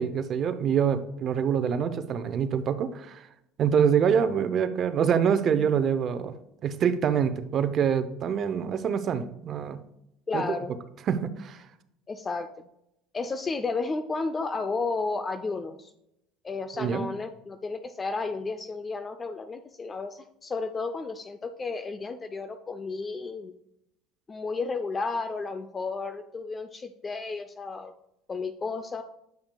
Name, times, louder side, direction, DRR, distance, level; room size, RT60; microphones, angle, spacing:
voice 1, 0.0-3.3 3.6-6.3 6.6-9.8 10.3-10.4 11.1-11.6 16.7-17.1, right 7 dB, 45° right, 11 dB, 0.6 m, -25 dB
voice 2, 10.3-10.7 12.1-12.7 13.1-15.9 16.4-23.5 24.3-27.9 28.3-29.0, left 4 dB, 25° left, 8 dB, 0.4 m, -32 dB
9.0 x 5.7 x 2.2 m, 0.82 s
supercardioid pair, 105°, 0 cm